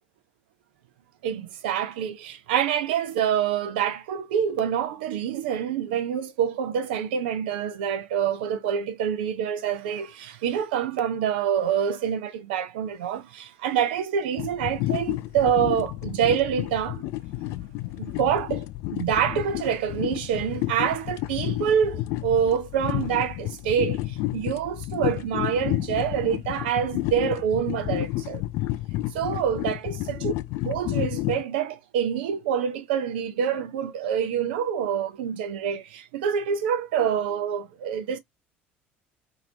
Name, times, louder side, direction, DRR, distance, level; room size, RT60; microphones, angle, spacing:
voice 1, 1.2-17.0 18.0-18.6 18.9-24.0 24.3-28.4 29.1-30.3 30.6-38.2, right 8 dB, 70° right, 0.6 m, -26 dB
sound 1, 14.4-31.4, left 17 dB, 60° left, 0.4 m, -31 dB
2.9 x 2.8 x 2.7 m
figure-of-eight pair, 60°, 6 cm